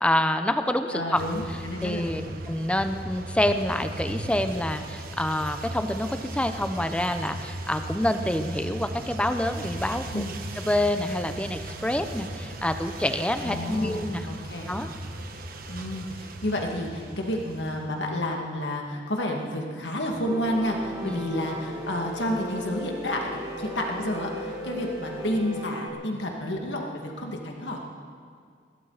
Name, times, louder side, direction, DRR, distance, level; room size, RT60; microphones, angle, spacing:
voice 1, 0.0-1.2 1.8-2.2 2.5-10.2 10.6-14.3 14.7-14.9 21.0-21.3, left 1 dB, 5° left, 8 dB, 0.7 m, -27 dB
voice 2, 0.9-2.3 10.1-10.3 13.4-14.7 15.7-27.8, left 1 dB, 75° left, 1 dB, 2.1 m, -30 dB
sound 1, 1.1-18.2, right 1 dB, 55° right, 1.3 m, -37 dB
Piano, 20.2-25.9, equal, 25° right, 2.6 m, -36 dB
sound 2, 20.4-25.5, left 1 dB, 55° left, 5.6 m, -46 dB
21.5 x 16.5 x 4.1 m, 2.1 s
head